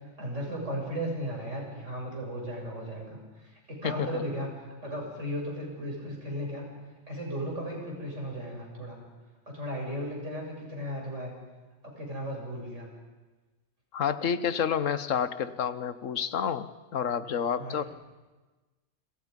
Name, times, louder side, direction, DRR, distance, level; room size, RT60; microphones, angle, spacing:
voice 1, 0.2-4.5 4.8-6.7 7.1-9.0 9.5-11.3 11.8-12.9 17.6-17.8, equal, 70° right, -1 dB, 7.5 m, -35 dB
voice 2, 3.8-4.2 13.9-17.9, left 7 dB, 85° left, 13 dB, 1.4 m, -29 dB
29.5 x 26.5 x 5.3 m, 1.2 s
omnidirectional pair, 1.3 m